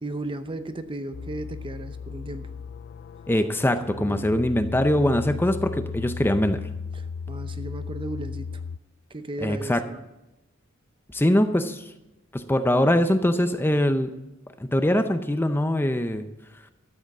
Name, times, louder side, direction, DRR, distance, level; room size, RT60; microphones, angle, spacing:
voice 1, 0.0-2.5 4.0-4.4 6.9-8.6 9.1-10.0, right 2 dB, 25° right, 10 dB, 0.7 m, -35 dB
sound 1, 1.1-8.8, left 5 dB, 50° left, 0.3 m, -36 dB
voice 2, 3.3-6.6 9.4-9.8 11.1-11.9 12.3-14.1 14.6-16.3, left 1 dB, 10° left, 9 dB, 0.6 m, -22 dB
13.0 x 7.9 x 7.2 m, 0.97 s
head